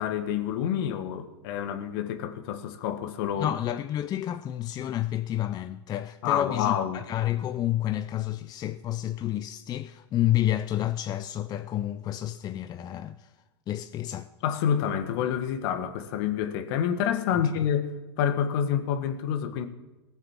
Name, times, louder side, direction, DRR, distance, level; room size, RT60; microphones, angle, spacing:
voice 1, 0.0-3.5 6.2-7.0 14.4-19.7, left 9 dB, 55° left, 1.6 m, -28 dB
voice 2, 3.4-13.3 13.7-14.3 17.3-17.7, left 12 dB, 30° left, 0.5 m, -30 dB
18.0 x 7.4 x 7.3 m
hypercardioid pair, 105°, 15 cm